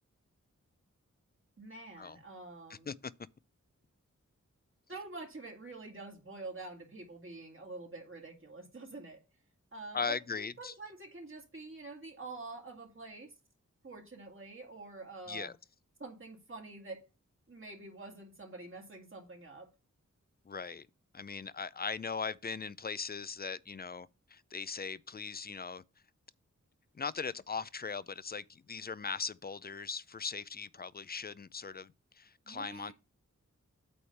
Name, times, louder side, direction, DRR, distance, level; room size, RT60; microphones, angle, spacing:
voice 1, 1.6-2.9 4.9-9.2 9.7-13.3 13.8-15.5 16.0-17.0 17.5-19.7 32.5-32.9, right 3 dB, 45° right, 2.0 m, -47 dB
voice 2, 9.9-10.7 15.3-15.5 20.5-20.9 21.1-25.8 26.9-32.9, left 5 dB, 35° left, 0.4 m, -39 dB
8.5 x 3.3 x 5.7 m
wide cardioid pair, 65°, 30 cm